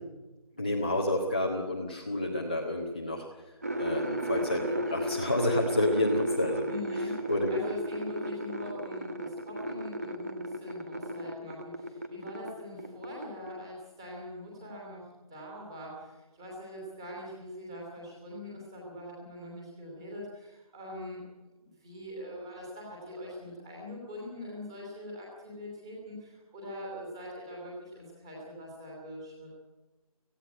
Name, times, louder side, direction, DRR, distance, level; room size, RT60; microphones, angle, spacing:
voice 1, 0.6-3.4 3.8-6.7 7.0-7.5, left 1 dB, 15° left, -2 dB, 0.9 m, -29 dB
sound 1, 3.6-12.5 12.8-13.5, equal, 25° right, 1.2 m, -35 dB
voice 2, 6.7-7.2 7.5-21.3 21.6-29.5, left 1 dB, 10° right, -2 dB, 2.9 m, -42 dB
17.5 x 16.0 x 9.5 m, 1.1 s
figure-of-eight pair, 180°, 19 cm